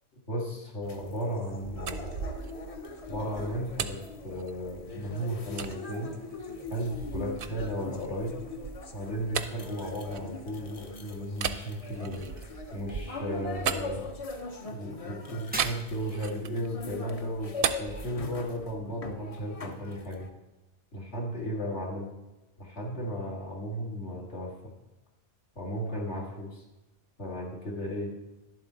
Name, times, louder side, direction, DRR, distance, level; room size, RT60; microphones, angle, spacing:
voice 1, 0.3-2.2 3.1-6.2 6.7-8.4 8.9-14.1 14.6-20.3 20.9-22.1 22.6-24.7 25.6-26.6 27.2-28.2, equal, 65° left, -3 dB, 2.3 m, -35 dB
sound 1, 0.8-20.3, left 3 dB, 35° left, 0.7 m, -42 dB
sound 2, 1.6-4.9 5.6-5.8 6.3-10.7 11.3-14.6 15.6-16.7 17.0-18.8, right 7 dB, 60° right, 0.7 m, -37 dB
Shatter, 15.5-16.3, right 2 dB, 10° right, 0.5 m, -39 dB
11.0 x 7.6 x 4.0 m, 1.0 s
omnidirectional pair, 1.2 m